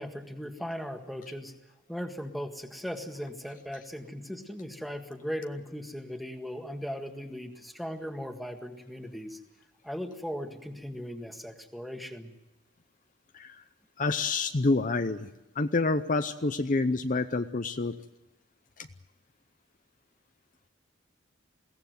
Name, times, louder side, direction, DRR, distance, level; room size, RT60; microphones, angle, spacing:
voice 1, 0.0-1.5 1.9-9.4 9.8-12.3, equal, ahead, 5 dB, 1.7 m, -38 dB
voice 2, 13.3-13.6 14.0-18.0 18.8-18.9, left 3 dB, 40° left, 9 dB, 0.7 m, -28 dB
21.5 x 17.0 x 9.3 m, 1.0 s
head